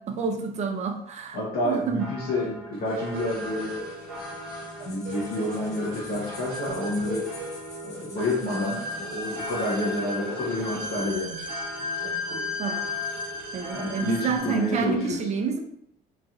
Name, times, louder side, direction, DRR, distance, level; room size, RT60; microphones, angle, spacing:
voice 1, 0.1-1.4 1.6-2.1 12.6-12.9 13.5-15.6, right 5 dB, 45° right, 5 dB, 0.5 m, -28 dB
voice 2, 1.3-3.9 4.8-7.3 7.8-11.6 11.9-12.5 13.7-15.2, left 1 dB, 65° left, -6 dB, 0.9 m, -29 dB
sound 1, 2.0-14.4, equal, 5° right, 1.1 m, -41 dB
sound 2, 2.9-14.8, left 2 dB, 60° right, 0.9 m, -35 dB
sound 3, 4.7-9.9, left 3 dB, 45° left, 0.8 m, -48 dB
3.0 x 2.6 x 2.4 m, 0.72 s
cardioid pair, 110°, 17 cm